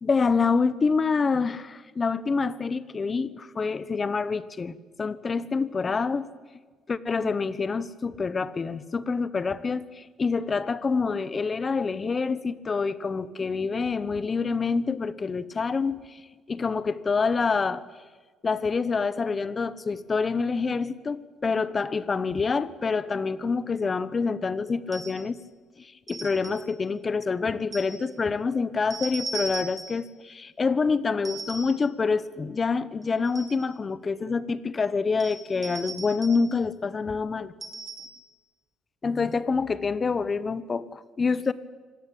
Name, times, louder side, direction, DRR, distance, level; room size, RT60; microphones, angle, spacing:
voice 1, 0.0-6.3 6.9-16.2 16.5-17.8 18.4-25.4 25.8-37.5 39.0-41.5, left 4 dB, 30° left, 16 dB, 1.2 m, -27 dB
sound 1, 24.9-25.3 26.1-26.7 27.7-28.1 28.9-30.1 31.2-31.9 33.0-33.7 35.2-36.5 37.6-38.3, right 3 dB, 25° right, 2.5 m, -38 dB
25.5 x 18.0 x 8.8 m, 1.4 s
cardioid pair, 105°, 0 cm